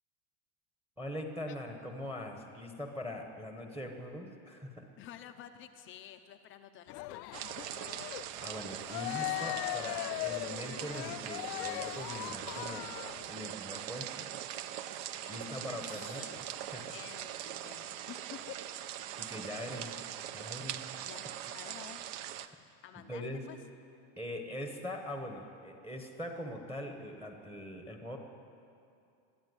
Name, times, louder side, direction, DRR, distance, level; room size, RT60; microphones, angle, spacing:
voice 1, 1.0-4.9 8.4-12.9 13.3-14.3 15.3-16.9 19.2-20.0 20.3-21.0 22.4-22.6 23.1-23.4 24.2-28.2, left 1 dB, 5° right, 3 dB, 1.1 m, -42 dB
voice 2, 5.0-7.7 15.2-16.6 16.9-18.6 21.1-22.0 22.8-23.6, left 10 dB, 25° left, 7 dB, 0.6 m, -51 dB
Cheering, 6.9-13.3, left 20 dB, 85° left, 0.6 m, -39 dB
sound 1, 7.3-22.5, right 11 dB, 50° right, 0.8 m, -42 dB
21.0 x 13.0 x 9.6 m, 2.5 s
supercardioid pair, 170°, 49 cm